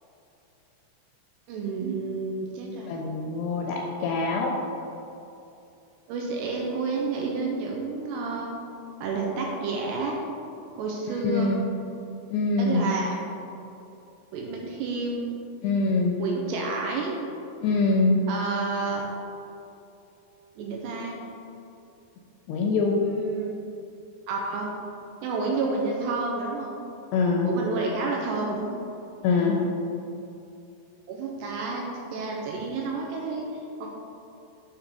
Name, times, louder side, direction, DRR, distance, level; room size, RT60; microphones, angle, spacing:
voice 1, 1.5-2.9 6.1-8.5 9.0-10.2 10.8-11.5 12.6-13.1 14.3-15.3 16.2-17.1 18.3-19.0 20.6-21.2 23.0-23.5 24.3-24.7 25.2-26.8 27.4-28.8 31.1-31.8 32.1-33.5 33.8-33.9, right 3 dB, 85° right, -1 dB, 2.5 m, -30 dB
voice 2, 2.9-4.5 11.2-11.6 12.3-12.9 15.6-16.2 17.6-18.3 22.5-23.0 27.1-27.5 29.2-29.7, left 3 dB, 85° left, 0 dB, 2.4 m, -24 dB
7.3 x 2.8 x 5.1 m, 2.8 s
omnidirectional pair, 5.1 m